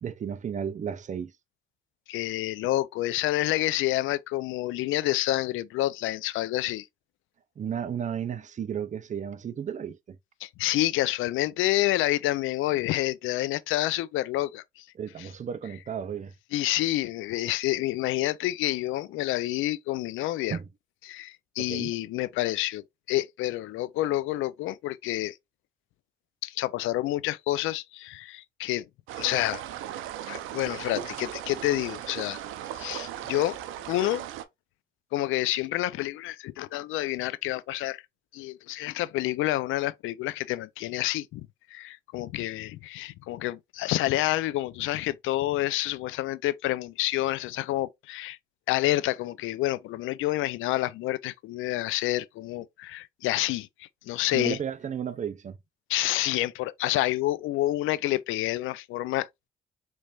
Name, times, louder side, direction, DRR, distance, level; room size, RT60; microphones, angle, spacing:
voice 1, 0.0-1.3 7.6-10.2 15.0-16.3 20.5-20.7 21.6-21.9 54.3-55.6, right 8 dB, 40° right, 0.5 m, -33 dB
voice 2, 2.1-6.9 10.4-14.8 15.2-15.3 16.5-20.6 21.1-25.4 26.4-28.9 29.2-29.6 30.3-32.4 32.8-33.6 33.9-34.2 35.1-38.0 38.3-41.5 41.7-48.4 48.7-54.6 55.9-59.3, left 16 dB, 85° left, 0.4 m, -28 dB
sound 1, 29.1-34.4, right 11 dB, 90° right, 0.5 m, -37 dB
4.3 x 3.2 x 2.3 m
cardioid pair, 90°, 20 cm